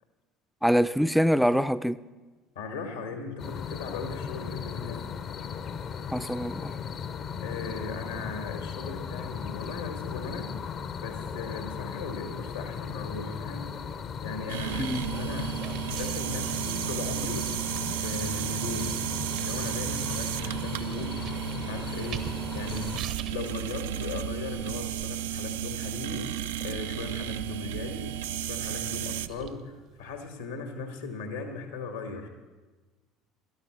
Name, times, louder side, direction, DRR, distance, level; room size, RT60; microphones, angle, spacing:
voice 1, 0.6-2.0 6.1-6.7 14.8-15.1, equal, ahead, 0.4 m, -24 dB
voice 2, 2.6-5.1 7.4-10.5 11.0-17.5 17.9-19.0 19.4-32.3, left 4 dB, 85° left, 1.9 m, -38 dB
sound 1, 3.4-23.0, left 7 dB, 45° left, 0.7 m, -37 dB
sound 2, 13.4-30.3, right 9 dB, 55° right, 0.8 m, -48 dB
sound 3, 14.5-29.3, right 11 dB, 75° right, 0.4 m, -33 dB
12.5 x 12.0 x 6.1 m
hypercardioid pair, 65°, 0 cm